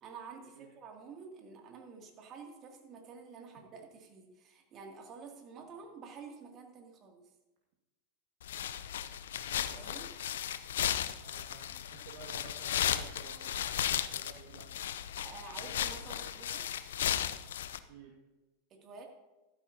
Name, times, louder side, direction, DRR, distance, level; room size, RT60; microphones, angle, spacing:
voice 1, 0.0-7.2 9.7-10.1 15.2-16.7 18.7-19.1, right 5 dB, 40° right, 2 dB, 2.6 m, -49 dB
sound 1, 8.4-17.8, left 10 dB, 70° left, 0.5 m, -35 dB
voice 2, 11.2-13.6 14.1-14.7 17.9-18.1, right 6 dB, 60° right, -1 dB, 1.8 m, -53 dB
14.5 x 12.5 x 2.8 m, 1.1 s
hypercardioid pair, 90°, 0 cm